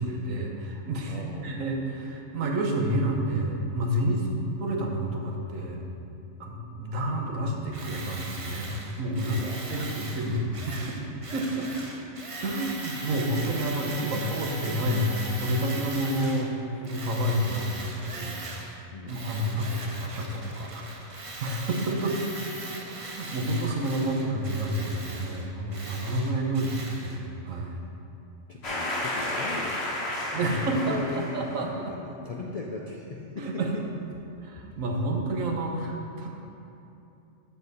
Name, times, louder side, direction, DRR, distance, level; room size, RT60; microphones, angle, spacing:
voice 1, 0.0-4.2 4.6-5.8 6.4-8.7 9.0-9.4 9.7-10.9 11.3-11.7 12.4-16.5 16.8-18.4 19.0-22.2 22.9-27.8 30.3-31.9 33.4-33.7 34.4-36.3, right 1 dB, 85° right, 0 dB, 1.3 m, -29 dB
voice 2, 1.1-1.7 4.1-4.4 9.2-10.1 11.9-12.0 16.7-16.8 17.2-18.1 18.9-19.3 28.5-31.5 31.9-33.8, left 3 dB, 70° left, -1 dB, 0.3 m, -39 dB
Tools, 7.7-16.5 16.8-18.8 19.1-27.2, right 2 dB, 35° right, 0.6 m, -40 dB
sound 1, 28.6-31.6, left 1 dB, 55° left, 1.6 m, -32 dB
12.5 x 4.2 x 4.1 m, 2.8 s
omnidirectional pair, 1.3 m